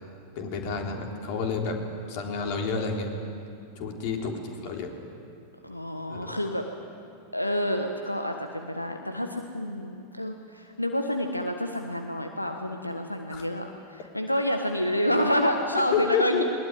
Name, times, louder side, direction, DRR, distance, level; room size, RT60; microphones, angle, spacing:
voice 1, 0.4-1.8 2.1-3.1 3.8-4.9 6.1-6.4 13.3-13.5 15.9-16.4, left 5 dB, 45° left, 2 dB, 3.7 m, -29 dB
voice 2, 5.6-6.7 7.3-16.4, equal, 85° left, 5 dB, 1.3 m, -28 dB
21.0 x 20.5 x 9.3 m, 2.5 s
figure-of-eight pair, 90°, 0 cm